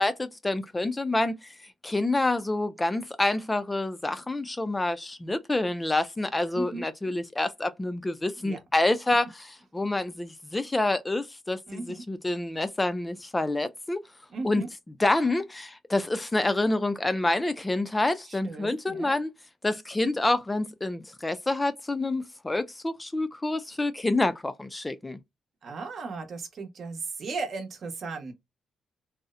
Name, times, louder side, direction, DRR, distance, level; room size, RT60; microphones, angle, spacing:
voice 1, 0.0-1.5 1.8-14.0 14.4-14.6 15.0-19.3 19.6-25.2, left 2 dB, 15° left, 0.3 m, -27 dB
voice 2, 6.5-6.9 8.4-8.6 11.7-12.0 14.3-14.7 18.3-19.2 25.6-28.3, right 4 dB, 55° right, 0.8 m, -36 dB
2.6 x 2.0 x 2.3 m
cardioid pair, 110°, 0 cm